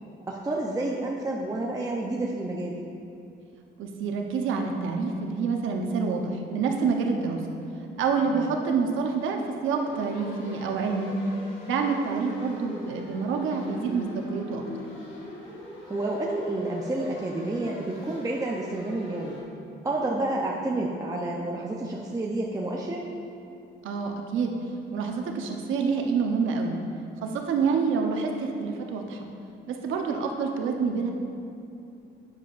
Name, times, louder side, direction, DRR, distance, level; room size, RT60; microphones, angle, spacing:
voice 1, 0.3-2.8 8.3-8.5 15.9-19.4 19.8-23.0, right 2 dB, 15° right, -2 dB, 0.6 m, -29 dB
voice 2, 3.8-7.4 8.0-11.1 11.7-14.9 23.8-24.5 24.9-26.8 27.2-29.3 29.7-31.1, right 5 dB, 85° right, 2 dB, 0.8 m, -27 dB
Thunderbolt in Fast Wail, 9.7-19.4, left 2 dB, 90° left, 1.5 m, -42 dB
8.9 x 7.2 x 2.5 m, 2.7 s
cardioid pair, 90°, 20 cm